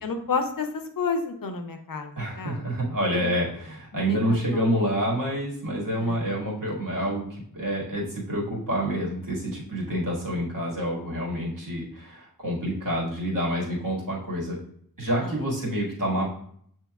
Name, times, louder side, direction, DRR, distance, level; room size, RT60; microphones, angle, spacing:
voice 1, 0.0-2.6 3.2-3.3 3.9-4.7 6.0-6.2 15.2-15.4, left 4 dB, 70° left, 6 dB, 0.7 m, -31 dB
voice 2, 2.2-14.6 15.0-16.3, equal, 65° right, -3 dB, 1.7 m, -28 dB
7.5 x 2.9 x 2.3 m, 0.63 s
wide cardioid pair, 60°, 36 cm